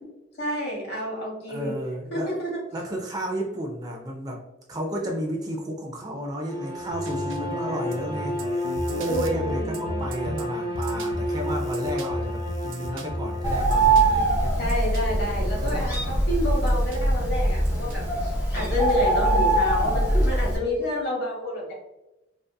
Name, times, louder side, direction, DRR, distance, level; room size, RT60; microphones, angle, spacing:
voice 1, 0.4-1.8 2.1-2.6 7.3-8.0 9.0-9.9 14.6-21.7, equal, 60° left, -2 dB, 0.9 m, -29 dB
voice 2, 1.5-2.3 2.7-14.6 15.6-15.8 19.7-20.3, equal, 20° right, 1 dB, 0.3 m, -33 dB
Bowed string instrument, 6.4-13.9, left 1 dB, 45° right, 1.0 m, -32 dB
sound 1, 6.9-19.4, right 1 dB, 90° right, 0.4 m, -35 dB
Bird, 13.4-20.6, right 2 dB, 20° left, 1.2 m, -22 dB
2.5 x 2.4 x 2.2 m, 0.96 s
head